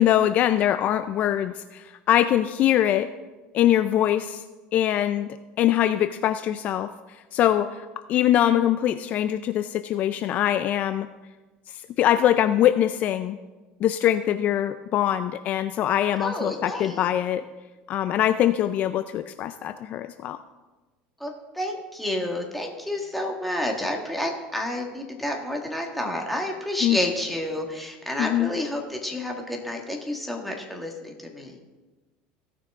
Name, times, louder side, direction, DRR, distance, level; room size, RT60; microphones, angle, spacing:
voice 1, 0.0-3.1 3.5-4.4 4.7-5.3 5.6-11.1 11.7-13.4 13.8-17.5 17.9-20.4 26.8-27.0 28.2-28.5, left 11 dB, 45° left, 11 dB, 0.4 m, -23 dB
voice 2, 16.2-17.0 21.2-31.6, left 1 dB, ahead, 0 dB, 1.6 m, -30 dB
16.5 x 6.0 x 3.6 m, 1.2 s
supercardioid pair, 130°, 4 cm